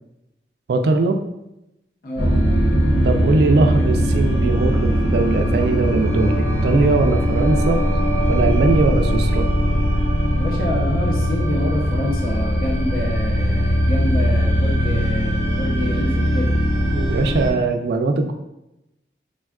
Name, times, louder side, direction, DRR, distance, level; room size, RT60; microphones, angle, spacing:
voice 1, 0.7-1.2 3.0-7.8 8.3-9.5 16.9-18.3, right 3 dB, 65° right, 5 dB, 0.3 m, -20 dB
voice 2, 2.0-2.4 10.4-16.5, left 1 dB, 55° left, -3 dB, 0.5 m, -27 dB
sound 1, 2.2-17.5, equal, 75° left, 1.1 m, -20 dB
3.4 x 2.3 x 2.2 m, 0.86 s
head